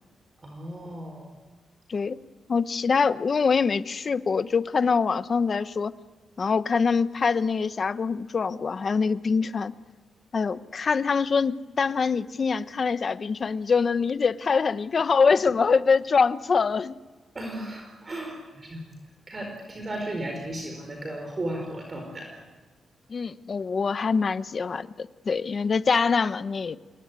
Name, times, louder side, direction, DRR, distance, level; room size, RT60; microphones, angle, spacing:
voice 1, 0.4-1.3 17.3-18.9 19.3-22.4, right 1 dB, 25° right, 3 dB, 4.5 m, -35 dB
voice 2, 2.5-5.9 6.4-9.7 10.3-17.0 23.1-26.8, left 5 dB, 35° left, 13 dB, 0.9 m, -24 dB
28.0 x 22.5 x 9.6 m, 1.3 s
wide cardioid pair, 150°, 0 cm